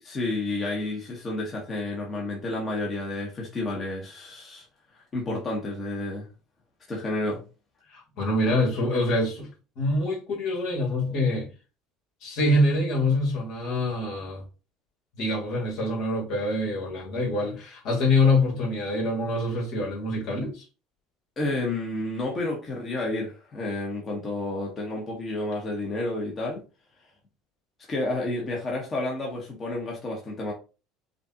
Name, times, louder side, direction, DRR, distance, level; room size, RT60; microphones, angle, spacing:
voice 1, 0.0-4.6 5.1-6.3 6.9-7.4 21.4-26.6 27.9-30.5, left 2 dB, 30° left, 1.3 m, -30 dB
voice 2, 7.9-9.5 9.8-11.5 12.2-14.4 15.1-20.6, left 2 dB, 65° left, 2.2 m, -25 dB
5.0 x 2.5 x 2.9 m
supercardioid pair, 115°, 0 cm